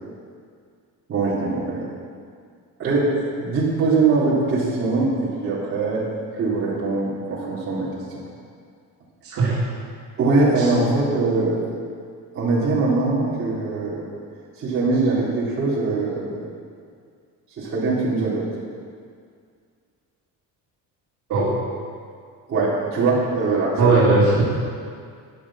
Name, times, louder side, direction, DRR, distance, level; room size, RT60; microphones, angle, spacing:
voice 1, 1.1-1.8 2.8-6.0 6.3-8.2 10.2-11.7 12.3-14.0 14.6-16.4 17.6-18.4 22.5-24.2, right 3 dB, 35° right, -7 dB, 3.7 m, -22 dB
voice 2, 9.2-9.6 10.6-10.7 21.3-21.5 23.8-24.4, right 3 dB, 55° right, -8 dB, 3.5 m, -18 dB
13.5 x 10.0 x 6.5 m, 2.2 s
cardioid pair, 175°, 36 cm